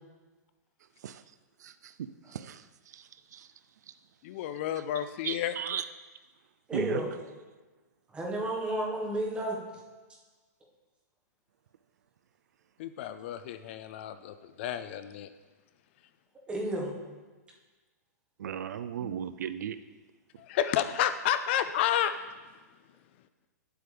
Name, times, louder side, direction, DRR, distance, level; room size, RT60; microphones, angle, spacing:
voice 1, 4.2-5.8 12.8-15.3 20.4-22.1, left 10 dB, 40° left, 11 dB, 0.4 m, -31 dB
voice 2, 5.2-5.8 6.7-7.0 18.4-19.8, right 9 dB, 75° right, 12 dB, 0.4 m, -35 dB
voice 3, 6.7-7.1 8.1-9.6 16.5-16.9 19.0-19.1, right 1 dB, 10° right, -1 dB, 1.5 m, -32 dB
10.5 x 7.8 x 3.4 m, 1.3 s
hypercardioid pair, 150°, 9 cm